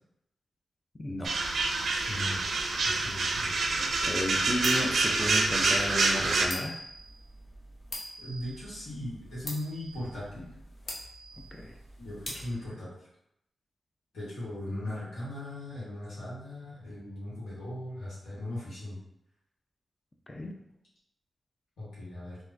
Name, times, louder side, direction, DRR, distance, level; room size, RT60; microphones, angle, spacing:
voice 1, 1.0-1.4 4.0-6.8 11.5-11.7 20.3-20.6, left 1 dB, 30° left, 3 dB, 0.5 m, -33 dB
sound 1, 1.2-6.5, right 3 dB, 75° right, 0.4 m, -27 dB
voice 2, 2.1-2.4 2.8-3.5 8.2-10.5 12.0-12.9 14.1-19.0 21.8-22.4, left 1 dB, 85° left, -9 dB, 1.4 m, -38 dB
sound 2, 3.2-12.7, left 1 dB, 65° left, 0.8 m, -45 dB
3.6 x 2.5 x 2.6 m, 0.78 s
cardioid pair, 45°, 0 cm